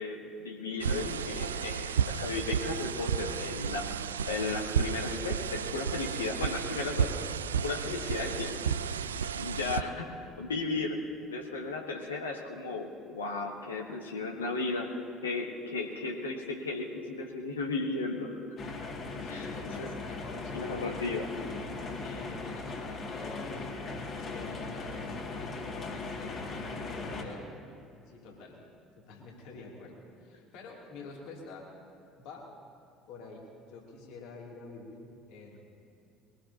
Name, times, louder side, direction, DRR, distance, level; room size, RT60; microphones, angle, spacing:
voice 1, 0.0-3.9 4.3-7.1 7.6-8.7 9.3-11.0 11.3-14.9 15.2-18.3 19.3-19.5 19.8-19.9 20.5-21.3, left 3 dB, 80° left, 1 dB, 1.3 m, -35 dB
sound 1, 0.8-9.8, right 7 dB, 75° right, 0.3 m, -32 dB
sound 2, 18.6-27.2, left 3 dB, 45° left, 2.2 m, -38 dB
voice 2, 19.2-21.1 21.9-23.7 24.2-27.5 28.1-28.6 29.0-31.7 32.2-32.5 33.1-35.7, left 3 dB, 60° left, -2 dB, 2.8 m, -47 dB
22.0 x 17.5 x 2.8 m, 2.5 s
figure-of-eight pair, 60°, 0 cm